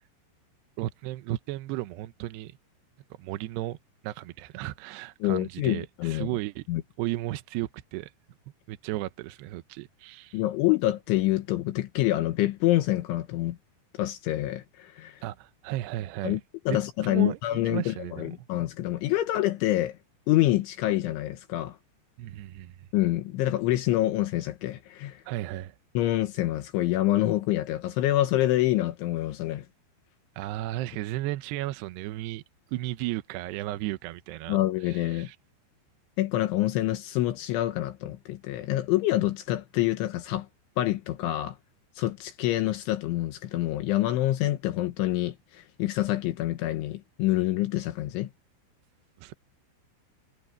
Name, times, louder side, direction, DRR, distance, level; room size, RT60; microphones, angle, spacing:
voice 1, 0.8-2.6 3.2-3.8 4.0-6.7 7.0-8.1 8.7-10.4 15.2-16.4 16.7-17.4 17.7-18.3 22.2-22.8 25.3-25.7 30.4-32.4 32.7-34.6 34.8-35.4 49.2-49.3, right 16 dB, 80° right, 2.5 m, -34 dB
voice 2, 5.2-6.3 6.7-6.8 10.3-13.6 14.0-15.2 16.2-16.4 16.7-20.0 20.3-21.8 22.9-25.2 26.0-29.7 34.5-35.3 36.2-40.5 40.8-41.6 42.0-48.3, left 15 dB, 80° left, 3.5 m, -26 dB
omnidirectional pair, 5.6 m